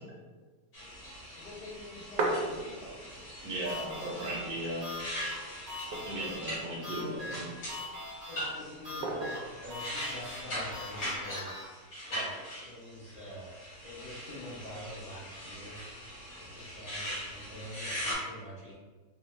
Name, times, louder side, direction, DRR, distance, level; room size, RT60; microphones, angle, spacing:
sound 1, 0.7-18.2, equal, 85° left, 2.2 m, -41 dB
voice 1, 1.3-3.3 3.8-4.0, left 1 dB, 70° left, -7 dB, 1.6 m, -47 dB
sound 2, 1.7-3.2 3.5-3.6 3.8-4.6 5.1-5.2 5.7-6.5 7.2-7.8 9.0-9.6 10.7-11.2, right 2 dB, 90° right, 1.3 m, -35 dB
voice 2, 3.4-4.9 5.9-7.4, right 1 dB, 65° right, -4 dB, 1.1 m, -36 dB
sound 3, 3.6-11.6, left 2 dB, 40° right, 0.6 m, -43 dB
voice 3, 6.9-7.3 8.3-11.8 12.1-13.5 13.8-15.8 16.4-18.7, equal, 30° left, -9 dB, 0.8 m, -45 dB
4.0 x 2.1 x 3.1 m, 1.4 s
omnidirectional pair, 1.8 m